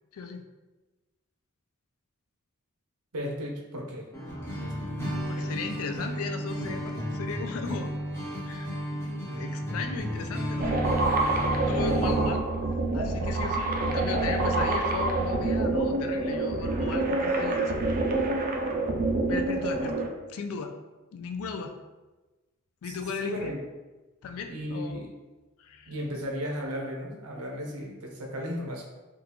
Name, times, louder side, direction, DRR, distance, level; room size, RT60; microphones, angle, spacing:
voice 1, 0.1-0.4 5.3-7.9 8.5-10.9 11.6-12.5 12.9-18.0 19.3-20.0 20.3-20.8 21.1-21.8 22.8-23.5 24.2-25.0 25.6-25.9, left 4 dB, 65° left, 6 dB, 0.4 m, -36 dB
voice 2, 3.1-4.1 4.4-4.7 22.8-23.6 24.5-25.1 25.9-28.8, equal, 85° right, -1 dB, 0.8 m, -35 dB
sound 1, 4.1-12.3, equal, 10° left, 0.7 m, -33 dB
sound 2, 10.6-20.1, right 2 dB, 40° right, 0.4 m, -27 dB
3.6 x 2.4 x 2.9 m, 1.2 s
head